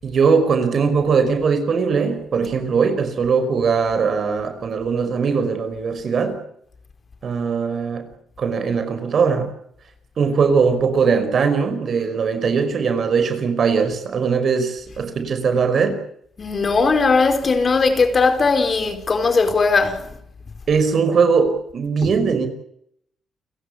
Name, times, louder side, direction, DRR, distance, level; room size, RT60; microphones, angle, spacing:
voice 1, 0.0-6.4 7.2-8.1 8.4-9.5 10.2-16.0 20.7-22.5, right 5 dB, 55° right, 5.4 m, -20 dB
voice 2, 16.4-20.1 22.0-22.1, left 4 dB, 40° left, 4.3 m, -18 dB
30.0 x 16.5 x 8.7 m
cardioid pair, 90°, 0 cm